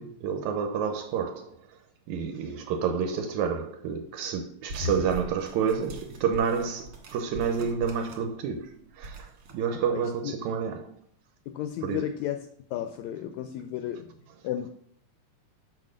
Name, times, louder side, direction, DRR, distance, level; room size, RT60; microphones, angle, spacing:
voice 1, 0.0-1.6 2.1-9.3 9.5-11.1 11.8-12.1, right 6 dB, 75° right, 1.8 m, -29 dB
sound 1, 4.7-8.4 8.7-9.6, left 1 dB, 55° right, 1.9 m, -40 dB
voice 2, 9.9-10.3 11.5-14.1 14.4-14.7, left 11 dB, 80° left, 1.7 m, -33 dB
6.1 x 4.4 x 6.3 m
omnidirectional pair, 3.8 m